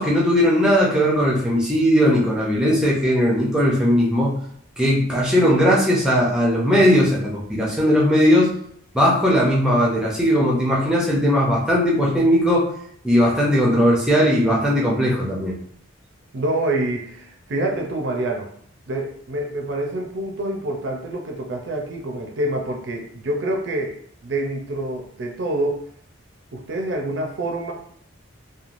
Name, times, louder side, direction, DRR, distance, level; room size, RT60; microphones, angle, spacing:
voice 1, 0.0-4.4 4.8-8.5 8.9-12.7 13.0-15.6, equal, 5° right, -4 dB, 0.5 m, -18 dB
voice 2, 16.3-18.5 18.9-25.8 26.5-27.7, right 1 dB, 60° right, 1 dB, 0.5 m, -26 dB
3.0 x 2.2 x 2.5 m, 0.64 s
head